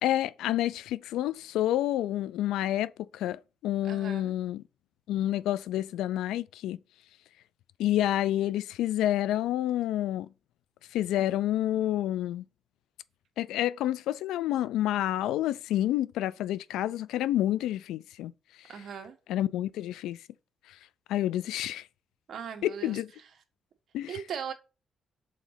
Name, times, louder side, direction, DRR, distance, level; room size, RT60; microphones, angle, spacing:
voice 1, 0.0-4.6 5.1-6.8 7.8-10.3 10.9-12.4 13.4-18.3 19.3-20.2 21.1-21.8 22.6-23.1 23.9-24.1, left 13 dB, 90° left, 0.3 m, -29 dB
voice 2, 3.8-4.3 18.7-19.2 22.3-23.3 24.1-24.5, right 8 dB, 60° right, 1.3 m, -39 dB
5.0 x 4.0 x 5.6 m
cardioid pair, 90°, 0 cm